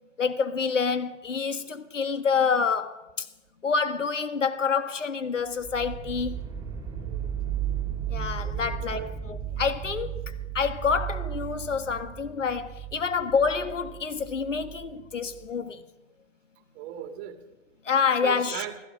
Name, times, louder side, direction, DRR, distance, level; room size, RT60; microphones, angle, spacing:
voice 1, 0.2-3.2 3.6-6.4 8.1-10.1 10.5-15.8 17.9-18.6, left 5 dB, 90° left, 1.5 m, -27 dB
sound 1, 5.6-15.5, right 9 dB, 10° right, 3.9 m, -35 dB
voice 2, 7.0-7.3 8.4-9.1 16.7-17.4 18.0-18.8, right 10 dB, 35° right, 2.1 m, -39 dB
16.5 x 14.0 x 5.6 m
hypercardioid pair, 115°, 36 cm